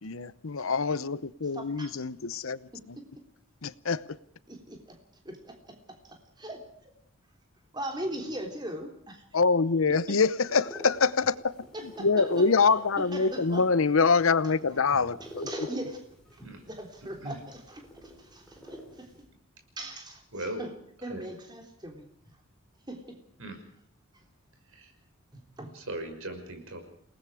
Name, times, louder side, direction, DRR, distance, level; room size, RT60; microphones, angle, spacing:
voice 1, 0.0-2.6 3.6-4.2 9.3-11.6 12.0-15.5, left 4 dB, 70° left, 0.8 m, -25 dB
voice 2, 1.5-1.9 2.3-2.4 2.7-3.0 4.5-5.0 5.2-6.9 7.7-9.2 10.1-10.2 11.7-13.7 14.4-14.8 15.2-16.0 16.3-19.1 19.8-20.7 21.0-22.4 22.9-23.2 24.1-24.2 25.3-25.8, right 1 dB, 20° right, 3.4 m, -41 dB
sound 1, 10.4-19.2, equal, 5° left, 6.2 m, -46 dB
voice 3, 25.7-26.8, right 1 dB, 70° right, 5.9 m, -38 dB
29.0 x 19.0 x 4.9 m
head